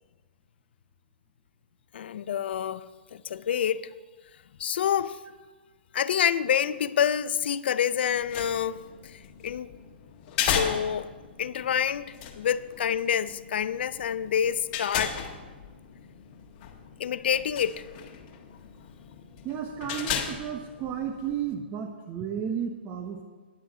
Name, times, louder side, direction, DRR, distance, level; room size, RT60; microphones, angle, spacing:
voice 1, 1.9-2.8 3.1-3.9 4.6-5.2 5.9-9.7 10.4-11.1 11.4-15.2 17.0-17.9, left 9 dB, 70° left, 0.5 m, -27 dB
sound 1, 8.1-21.5, left 8 dB, 45° left, 1.5 m, -36 dB
voice 2, 19.4-23.2, right 8 dB, 30° right, 0.9 m, -33 dB
10.0 x 7.7 x 6.8 m
hypercardioid pair, 130°, 6 cm